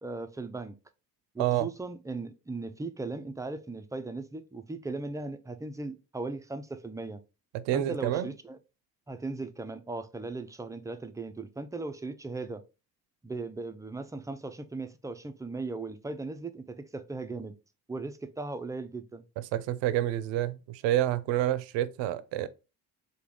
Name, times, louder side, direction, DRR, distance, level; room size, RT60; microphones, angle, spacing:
voice 1, 0.0-0.7 1.3-7.2 7.7-8.6 9.1-12.6 13.2-17.5 17.9-19.2, right 3 dB, 10° right, 0.3 m, -38 dB
voice 2, 7.5-8.3 19.5-22.5, right 13 dB, 70° right, 0.5 m, -28 dB
3.4 x 2.2 x 3.7 m
hypercardioid pair, 45°, 47 cm